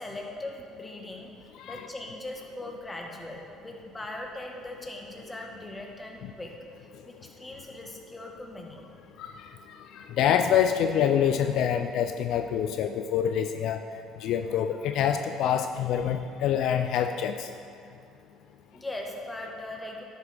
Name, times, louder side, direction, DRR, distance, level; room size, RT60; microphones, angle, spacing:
voice 1, 0.0-1.3 1.7-6.5 7.0-8.9 18.7-20.0, left 2 dB, 15° left, 0 dB, 1.2 m, -39 dB
voice 2, 9.2-9.5 9.8-13.8 14.2-17.5, left 9 dB, 70° left, 7 dB, 0.4 m, -26 dB
11.0 x 6.8 x 3.4 m, 2.4 s
cardioid pair, 105°, 0 cm